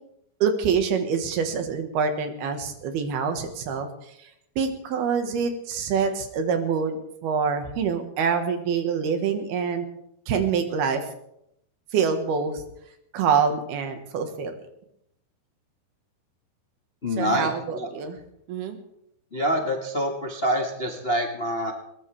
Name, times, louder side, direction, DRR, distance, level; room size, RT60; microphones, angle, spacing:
voice 1, 0.4-3.9 4.2-4.3 4.6-9.9 10.3-11.0 11.9-12.6 13.1-14.5 17.2-18.2 18.5-18.8, right 6 dB, 70° right, 6 dB, 3.4 m, -25 dB
voice 2, 17.0-17.9 19.3-21.7, equal, 90° left, 1 dB, 0.5 m, -26 dB
21.0 x 19.5 x 3.5 m, 0.77 s
omnidirectional pair, 4.8 m